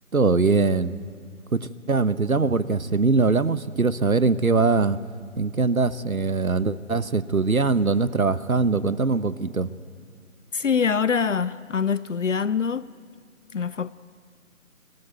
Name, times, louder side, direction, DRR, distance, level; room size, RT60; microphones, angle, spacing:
voice 1, 0.1-1.0 1.5-5.0 5.4-9.7, right 4 dB, 85° right, 1.1 m, -22 dB
voice 2, 10.5-12.9 13.5-13.9, left 6 dB, 60° left, 0.6 m, -24 dB
24.5 x 18.5 x 9.4 m
figure-of-eight pair, 145°, 41 cm